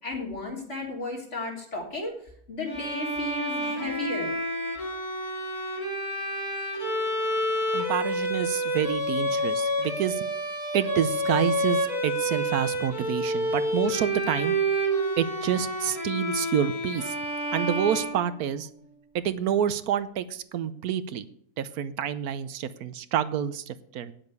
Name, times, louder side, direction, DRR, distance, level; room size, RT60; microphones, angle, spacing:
voice 1, 0.0-2.1 2.5-4.3, left 2 dB, 50° left, -1 dB, 3.5 m, -34 dB
Bowed string instrument, 2.7-18.6, right 1 dB, 75° left, 3.6 m, -29 dB
voice 2, 7.7-10.3 10.7-14.5 15.2-17.2 17.5-18.7 19.1-21.3 21.6-24.1, right 9 dB, 80° right, 14 dB, 1.2 m, -28 dB
8.9 x 7.7 x 8.1 m, 0.64 s
omnidirectional pair, 1.6 m